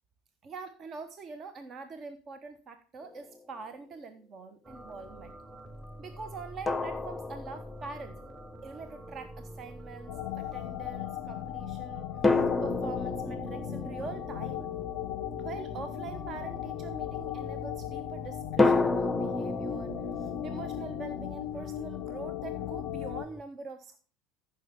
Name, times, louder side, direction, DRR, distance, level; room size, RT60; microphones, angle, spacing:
voice 1, 0.4-5.3 6.0-8.2 8.6-14.7 15.4-24.0, right 4 dB, 40° right, 9 dB, 1.1 m, -44 dB
sound 1, 3.0-3.2 6.7-8.2 12.2-15.9 18.6-21.3, left 3 dB, 15° left, 0.8 m, -30 dB
sound 2, 4.6-23.4, equal, 10° right, 1.0 m, -46 dB
sound 3, 10.1-23.2, left 16 dB, 65° left, 0.4 m, -38 dB
14.0 x 6.4 x 3.5 m, 0.38 s
figure-of-eight pair, 70°, 0 cm